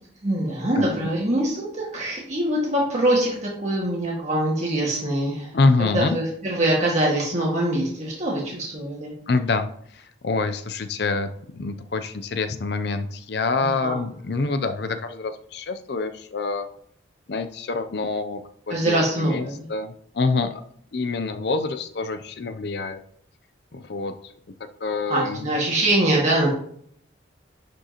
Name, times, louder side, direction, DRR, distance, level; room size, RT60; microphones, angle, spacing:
voice 1, 0.2-5.5 5.8-9.1 13.6-14.0 18.7-19.7 25.1-26.5, right 1 dB, 35° right, -4 dB, 1.8 m, -23 dB
voice 2, 5.5-6.2 9.3-9.7 9.9-16.7 17.3-18.4 18.7-20.5 20.9-23.0 23.7-24.3 24.8-25.4, left 3 dB, 55° left, 8 dB, 0.5 m, -26 dB
11.0 x 5.2 x 2.9 m, 0.64 s
head